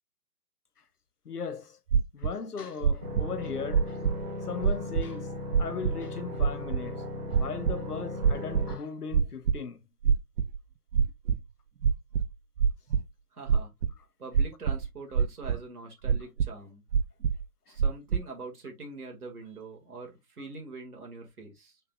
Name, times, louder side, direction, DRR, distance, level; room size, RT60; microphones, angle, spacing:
voice 1, 1.2-1.8 2.1-4.0 4.5-9.8 17.7-17.8, left 5 dB, 65° left, 1.0 m, -38 dB
sound 1, 1.9-2.3 2.8-3.3 3.7-4.3 4.6-5.1 5.5-6.0 6.4-6.8 7.3-7.8 8.2-8.7 9.1-9.6 10.0-10.6 10.9-11.4 11.8-13.0 13.5-13.9 14.3-14.9 15.1-15.6 16.0-16.5 16.9-17.4 17.8-18.2, right 6 dB, 85° right, 0.6 m, -25 dB
sound 2, 3.0-8.8, left 1 dB, 25° right, 2.2 m, -37 dB
voice 2, 13.3-13.7 14.2-16.8 17.7-21.8, right 3 dB, 60° right, 1.9 m, -43 dB
5.5 x 3.7 x 2.2 m
figure-of-eight pair, 135°, 49 cm